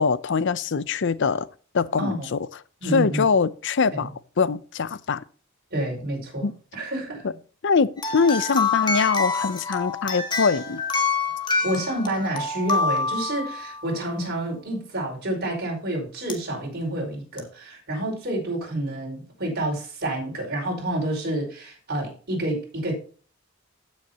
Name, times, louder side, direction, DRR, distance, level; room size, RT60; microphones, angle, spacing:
voice 1, 0.0-1.5 1.7-2.4 2.9-4.1 4.4-5.2 6.4-6.5 7.6-10.8, left 5 dB, 60° left, 0.6 m, -23 dB
voice 2, 2.8-3.3 3.9-4.1 5.7-7.4 11.6-22.9, right 1 dB, 55° right, 5.1 m, -29 dB
sound 1, 8.0-13.9 16.3-16.4 17.4-17.5, left 4 dB, 25° left, 1.7 m, -26 dB
16.0 x 6.5 x 2.9 m
head